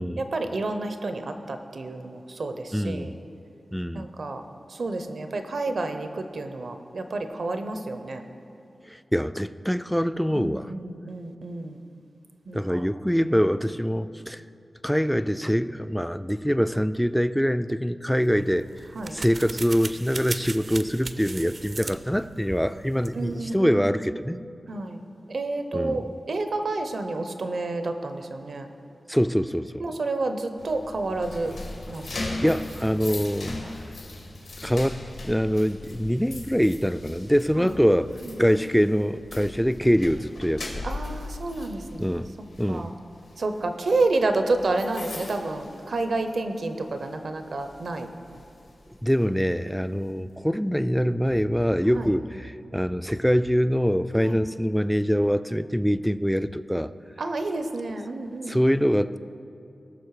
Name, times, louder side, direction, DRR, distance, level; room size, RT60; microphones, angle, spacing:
voice 1, 0.2-3.1 3.9-4.4 4.7-8.2 10.3-11.8 12.5-12.9 18.9-19.2 23.1-23.9 24.7-25.0 25.3-28.7 29.8-31.5 31.9-32.3 33.6-33.7 37.6-37.7 38.2-38.6 40.8-42.2 42.7-42.9 43.4-48.1 51.9-52.1 54.2-54.4 57.2-58.6, right 2 dB, 70° right, 7 dB, 0.8 m, -30 dB
voice 2, 2.7-3.2 3.7-4.1 8.9-10.7 12.5-14.4 14.8-18.7 19.1-24.4 25.7-26.2 29.1-29.8 32.4-33.6 34.6-38.1 38.4-40.6 42.0-42.3 42.6-42.9 49.0-56.9 58.5-59.2, equal, ahead, 13 dB, 0.3 m, -24 dB
sound 1, 18.2-23.6, right 3 dB, 50° right, 0.5 m, -39 dB
sound 2, 30.6-46.5 46.8-47.1 47.6-49.3, left 2 dB, 85° left, 2.1 m, -39 dB
18.0 x 6.5 x 4.8 m, 2.6 s
wide cardioid pair, 85°, 0 cm